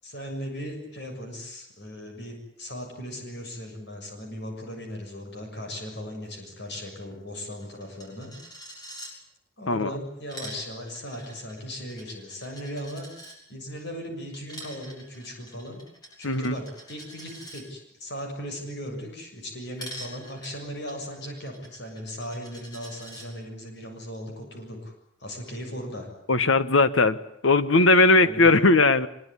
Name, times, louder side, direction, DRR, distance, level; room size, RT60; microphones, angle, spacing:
voice 1, 0.0-8.3 9.6-13.1 13.5-15.8 16.2-24.9 25.2-26.1 28.2-28.6, equal, 60° left, 7.0 m, -37 dB
Coin (dropping), 6.7-6.8 7.1-7.2 7.4-9.1 10.1-13.4 14.3-17.6 19.8-23.3, right 1 dB, 20° left, 6.8 m, -45 dB
voice 2, 16.2-16.6 26.3-27.2 27.4-29.1, left 3 dB, 85° left, 1.4 m, -19 dB
24.0 x 22.0 x 9.9 m
head